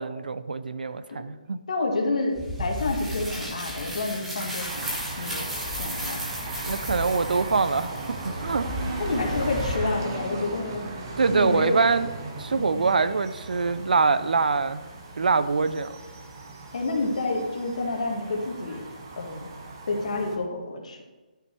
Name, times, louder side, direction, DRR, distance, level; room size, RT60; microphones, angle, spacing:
voice 1, 0.0-1.6 6.6-8.7 11.2-12.1 12.4-14.9 15.2-16.0, right 4 dB, 75° right, 13 dB, 0.6 m, -24 dB
voice 2, 1.7-4.9 5.2-5.4 5.8-6.2 9.0-10.8 11.3-11.9 12.5-12.8 16.7-18.8 19.2-19.5 19.9-21.0, left 2 dB, 50° left, 1 dB, 1.9 m, -29 dB
sound 1, 2.3-9.7, equal, 5° right, 1.2 m, -34 dB
sound 2, 4.6-20.4, right 3 dB, 25° right, 1.0 m, -38 dB
12.5 x 5.9 x 4.6 m, 1.2 s
hypercardioid pair, 175°, 5 cm